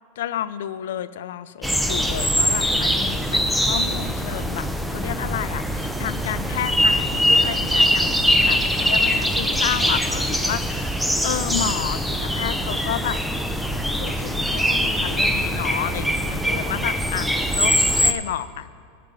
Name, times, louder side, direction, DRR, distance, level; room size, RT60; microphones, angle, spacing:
voice 1, 0.2-11.0 11.2-13.2 14.0-18.7, left 11 dB, 80° left, 15 dB, 0.4 m, -31 dB
sound 1, 1.6-18.1, equal, ahead, 0.5 m, -22 dB
sound 2, 5.7-11.4, right 2 dB, 50° right, 1.8 m, -43 dB
11.5 x 5.1 x 8.6 m, 2.2 s
supercardioid pair, 145°, 0 cm